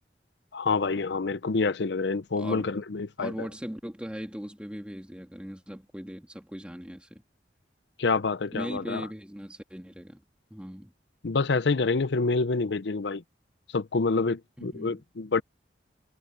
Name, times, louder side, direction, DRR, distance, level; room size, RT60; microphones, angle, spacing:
voice 1, 0.5-3.5 8.0-9.1 11.2-13.2 13.7-15.4, left 4 dB, 70° left, 0.6 m, -27 dB
voice 2, 2.4-2.7 3.2-7.2 8.5-10.2 10.5-10.9 14.6-15.0, equal, 5° right, 2.3 m, -39 dB
head